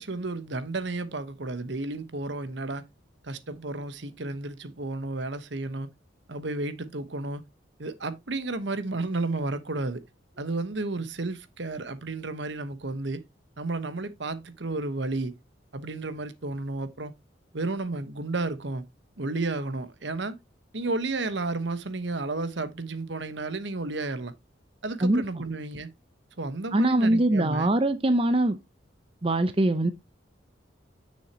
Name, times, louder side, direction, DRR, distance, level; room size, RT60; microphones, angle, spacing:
voice 1, 0.0-2.8 3.2-5.9 6.3-7.4 7.8-10.0 10.4-13.2 13.6-15.3 15.7-17.1 17.5-18.8 19.2-20.4 20.7-24.3 24.8-25.9 26.4-27.7, right 2 dB, 70° right, 1.1 m, -32 dB
voice 2, 26.7-28.6 29.2-29.9, right 1 dB, 30° right, 0.6 m, -22 dB
9.9 x 6.4 x 2.8 m
head